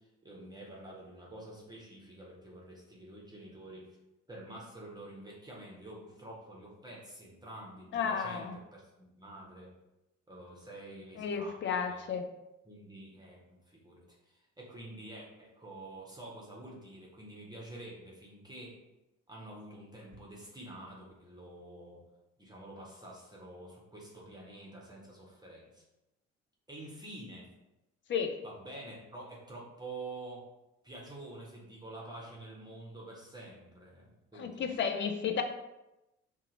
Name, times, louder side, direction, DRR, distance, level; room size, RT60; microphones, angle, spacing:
voice 1, 0.0-4.0 4.3-9.7 10.3-12.1 12.6-18.8 19.3-22.1 22.4-25.8 26.7-27.5 28.4-30.5 30.8-34.8, right 1 dB, 10° right, -4 dB, 1.0 m, -48 dB
voice 2, 7.9-8.6 11.2-12.3 28.1-28.4 34.4-35.4, left 6 dB, 35° left, 5 dB, 0.5 m, -32 dB
2.8 x 2.4 x 3.9 m, 0.94 s
figure-of-eight pair, 45°, 36 cm